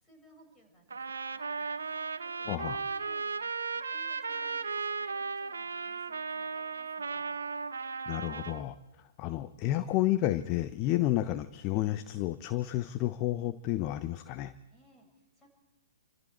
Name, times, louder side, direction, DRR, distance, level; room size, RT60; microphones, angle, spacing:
voice 1, 0.0-7.4 14.7-15.6, right 2 dB, 15° left, 3 dB, 5.7 m, -61 dB
Trumpet, 0.9-8.6, right 5 dB, 65° right, 1.1 m, -36 dB
voice 2, 2.5-2.8 8.1-8.8 9.2-14.5, left 14 dB, 30° left, 13 dB, 0.7 m, -31 dB
29.0 x 25.5 x 4.4 m, 1.1 s
figure-of-eight pair, 120°, 0 cm